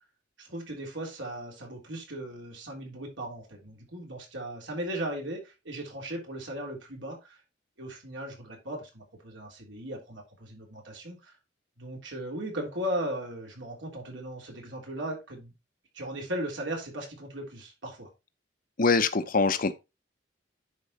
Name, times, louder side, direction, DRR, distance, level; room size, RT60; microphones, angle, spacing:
voice 1, 0.4-7.4 7.8-11.3 11.8-15.5 15.9-18.1, right 1 dB, 80° right, 3.4 m, -37 dB
voice 2, 18.8-19.7, left 4 dB, 50° left, 0.8 m, -23 dB
10.0 x 4.6 x 4.1 m
head